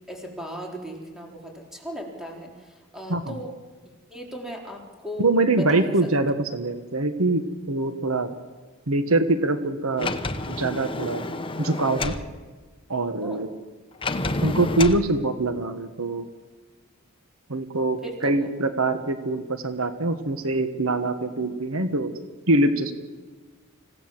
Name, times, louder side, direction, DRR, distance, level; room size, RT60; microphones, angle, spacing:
voice 1, 0.1-3.5 4.1-5.3 5.6-6.1 13.2-13.4 18.0-18.5, equal, 5° right, 0 dB, 3.9 m, -37 dB
voice 2, 5.2-8.3 8.9-10.1 10.5-11.2 11.6-12.1 12.9-13.5 14.4-16.3 17.5-22.1 22.5-23.0, right 2 dB, 85° right, 9 dB, 1.4 m, -24 dB
Sliding door, 10.0-12.3 14.0-15.0, left 2 dB, 25° left, 1.0 m, -29 dB
25.5 x 16.5 x 7.6 m, 1.4 s
head